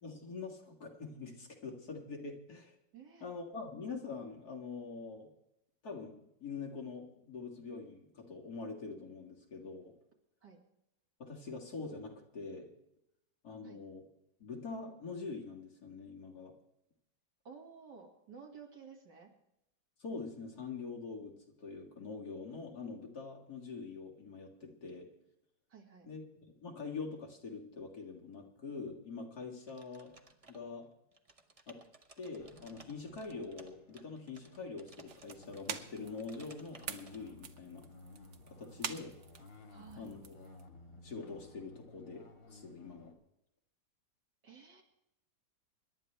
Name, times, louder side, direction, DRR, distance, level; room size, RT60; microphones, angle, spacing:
voice 1, 0.0-2.7 3.2-5.3 5.8-9.9 11.2-12.7 13.4-14.0 14.4-16.5 20.0-21.3 21.6-25.1 26.1-26.2 26.6-30.1 30.5-30.9 31.7-31.8 32.2-37.8 38.6-39.2 40.0-40.5 41.0-43.1, left 4 dB, 60° left, 0 dB, 2.5 m, -44 dB
voice 2, 2.9-3.3 10.4-10.6 13.6-13.8 17.4-19.3 25.7-26.1 39.7-40.1 44.4-44.8, right 6 dB, 70° right, 0 dB, 2.8 m, -53 dB
sound 1, 29.7-30.8 31.1-37.2, right 3 dB, 25° right, 0.8 m, -59 dB
sound 2, 32.4-43.1, left 2 dB, 90° left, 2.6 m, -57 dB
sound 3, 35.1-40.7, right 7 dB, 50° right, 1.0 m, -47 dB
26.0 x 11.5 x 3.4 m, 0.83 s
omnidirectional pair, 1.9 m